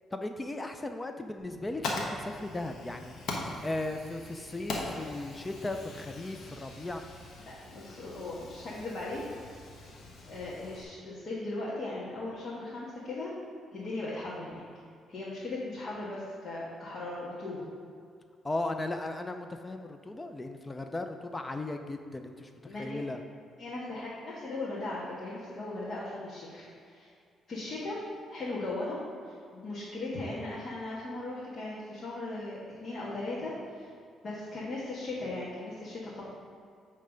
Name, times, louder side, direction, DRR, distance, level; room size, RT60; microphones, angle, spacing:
voice 1, 0.1-3.1 3.6-7.0 18.4-22.5 22.8-23.2, left 2 dB, 20° left, 6 dB, 0.4 m, -36 dB
Fire, 1.4-10.8, left 2 dB, 70° left, 1.2 m, -41 dB
voice 2, 7.4-9.2 10.2-13.3 13.7-14.6 15.1-17.6 22.6-23.0 23.6-27.1 27.5-28.0 28.3-29.0 29.3-33.9 34.2-36.3, left 2 dB, 50° left, -7 dB, 1.5 m, -38 dB
8.7 x 3.3 x 5.1 m, 2.3 s
cardioid pair, 90°, 0 cm